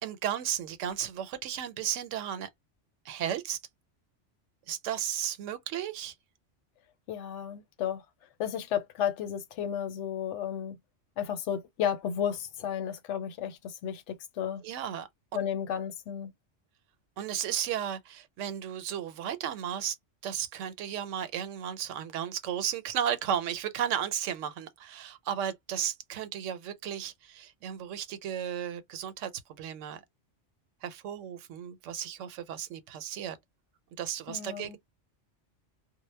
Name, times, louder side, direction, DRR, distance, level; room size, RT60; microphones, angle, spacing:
voice 1, 0.0-2.5 3.0-3.6 4.7-6.1 14.6-15.4 17.2-20.0 20.2-30.0 30.8-33.4 34.0-34.8, right 9 dB, 85° right, 0.9 m, -34 dB
voice 2, 7.1-8.0 8.4-10.8 11.2-14.6 15.3-16.3 34.3-34.8, left 9 dB, 80° left, 0.9 m, -33 dB
2.1 x 2.0 x 3.1 m
omnidirectional pair, 1.2 m